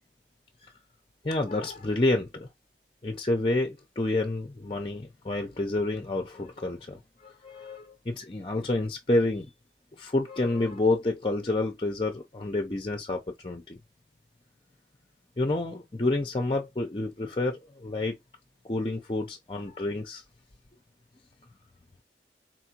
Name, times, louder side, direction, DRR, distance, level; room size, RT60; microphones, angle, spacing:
voice 1, 1.2-2.5 3.0-9.5 9.9-13.8 15.4-18.2 18.7-20.2, left 2 dB, 30° left, 0.6 m, -29 dB
4.3 x 3.5 x 2.8 m
head